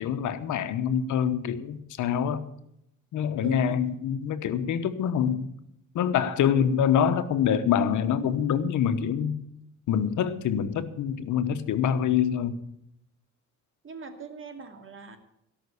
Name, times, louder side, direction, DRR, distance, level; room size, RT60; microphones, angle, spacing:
voice 1, 0.0-2.4 3.1-5.5 5.9-9.4 9.9-12.6, left 8 dB, 75° left, 10 dB, 1.1 m, -25 dB
voice 2, 3.4-3.8 6.5-6.8 13.8-15.2, right 4 dB, 45° right, 6 dB, 2.4 m, -41 dB
17.5 x 6.1 x 8.4 m, 0.79 s
cardioid pair, 90°, 30 cm